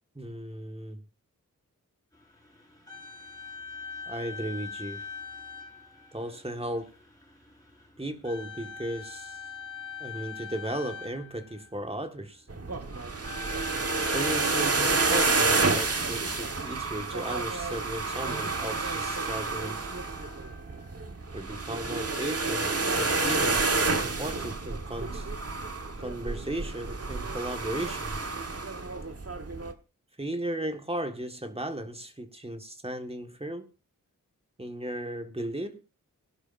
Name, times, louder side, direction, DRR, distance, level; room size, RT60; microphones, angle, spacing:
voice 1, 0.2-1.0 4.1-5.1 6.1-6.9 8.0-9.4 10.0-12.4 14.1-19.8 21.3-22.7 23.0-25.3 26.0-28.3 30.2-33.7 34.6-35.8, right 1 dB, 15° right, 1.6 m, -36 dB
sound 1, 2.1-16.6 18.1-21.4, left 3 dB, 10° left, 5.5 m, -43 dB
sound 2, 12.5-29.7, right 3 dB, 45° right, 1.3 m, -29 dB
20.0 x 11.0 x 2.6 m
wide cardioid pair, 75°, 33 cm